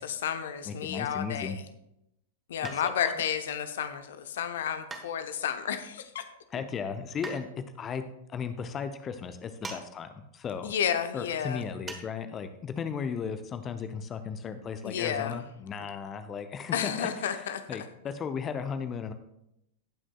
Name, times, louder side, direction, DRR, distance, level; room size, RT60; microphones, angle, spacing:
voice 1, 0.0-1.6 2.5-6.2 10.6-11.6 14.8-15.4 16.7-17.6, left 8 dB, 55° left, 9 dB, 0.7 m, -31 dB
voice 2, 0.7-1.6 2.7-3.1 6.5-10.7 11.1-17.4 17.7-19.1, left 6 dB, 25° left, 9 dB, 0.6 m, -36 dB
sound 1, 2.6-3.2 4.9-5.6 7.2-7.5 9.6-9.9 10.1-10.2 11.9-12.1 12.4-12.5, right 3 dB, 15° right, 1.2 m, -41 dB
18.5 x 6.1 x 2.3 m, 0.81 s
figure-of-eight pair, 95°, 0 cm